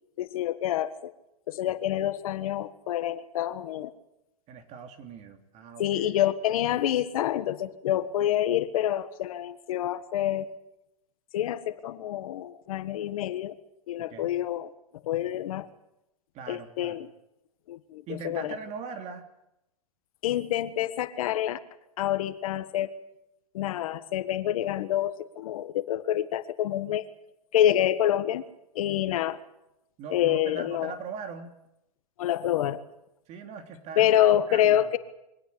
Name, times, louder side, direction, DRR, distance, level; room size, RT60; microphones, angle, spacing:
voice 1, 0.2-1.1 1.5-3.9 5.8-10.5 11.3-13.6 13.9-14.7 15.0-15.7 16.5-17.1 17.7-18.6 20.2-21.6 22.0-22.9 23.5-27.0 27.5-28.4 28.7-29.4 30.1-30.9 32.2-32.8 34.0-35.0, left 12 dB, 65° left, 12 dB, 1.6 m, -27 dB
voice 2, 1.6-2.0 4.5-6.0 14.1-14.3 16.3-17.0 18.1-19.3 30.0-31.6 33.3-34.2 34.5-34.9, right 5 dB, 35° right, 6 dB, 3.2 m, -41 dB
23.5 x 17.5 x 8.6 m, 0.88 s
hypercardioid pair, 130°, 19 cm